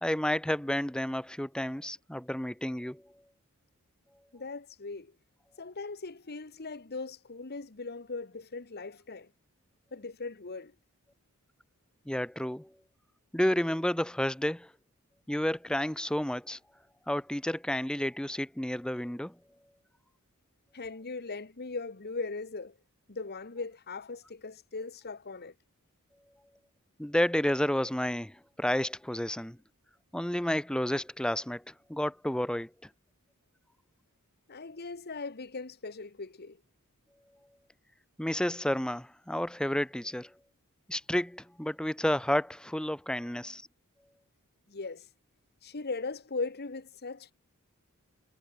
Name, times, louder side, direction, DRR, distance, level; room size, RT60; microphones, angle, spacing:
voice 1, 0.0-3.0 12.1-12.7 13.3-14.7 15.3-16.6 17.1-19.4 27.0-29.6 30.1-32.7 38.2-40.3 40.9-43.6, left 1 dB, 5° left, 0.6 m, -31 dB
voice 2, 4.3-5.1 5.6-9.3 9.9-10.7 20.7-22.8 23.1-25.5 34.5-36.6 44.7-45.1 45.6-47.3, left 3 dB, 50° left, 1.3 m, -39 dB
head